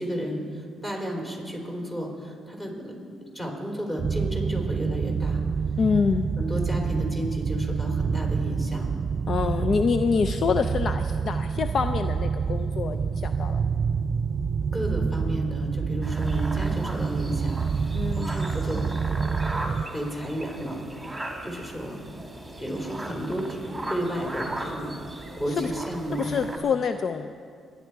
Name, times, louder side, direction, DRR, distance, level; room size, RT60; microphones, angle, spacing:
voice 1, 0.0-5.4 6.4-8.9 14.7-18.9 19.5-22.0 22.6-26.3, equal, 20° left, 0 dB, 3.8 m, -32 dB
sound 1, 4.0-19.8, right 5 dB, 45° right, 0.3 m, -27 dB
voice 2, 5.8-6.3 9.3-13.6 17.9-18.3 25.5-25.7 26.2-27.3, left 5 dB, 55° left, 9 dB, 0.4 m, -26 dB
sound 2, 16.0-26.6, right 1 dB, 10° right, 2.2 m, -38 dB
24.0 x 10.5 x 4.7 m, 2.3 s
cardioid pair, 90°, 0 cm